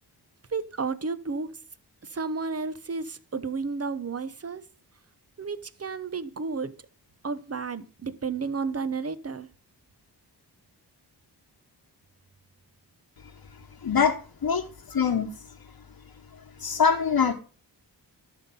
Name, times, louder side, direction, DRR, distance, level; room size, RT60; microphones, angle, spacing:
voice 1, 0.5-1.5 2.0-4.6 5.4-6.7 7.2-9.5, right 4 dB, 35° right, 1.0 m, -32 dB
voice 2, 13.8-15.3 16.6-17.3, left 6 dB, 55° left, 1.2 m, -24 dB
12.0 x 5.8 x 5.4 m
wide cardioid pair, 75°, 41 cm